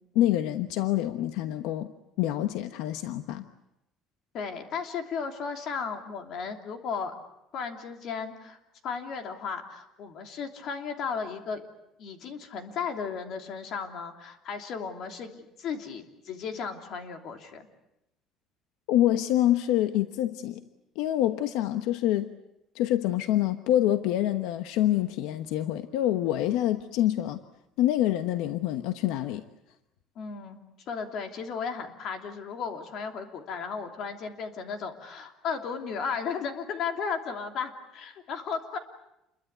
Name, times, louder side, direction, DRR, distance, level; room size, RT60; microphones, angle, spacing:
voice 1, 0.1-1.9 2.2-3.4 18.9-20.6 20.9-22.3 22.7-27.4 27.8-29.4, left 13 dB, 80° left, 9 dB, 1.1 m, -26 dB
voice 2, 4.3-7.1 7.5-8.6 8.8-11.6 12.0-17.6 30.1-30.6 30.9-38.8, left 6 dB, 45° left, 5 dB, 3.0 m, -35 dB
28.5 x 22.5 x 8.1 m, 0.88 s
cardioid pair, 175°, 0 cm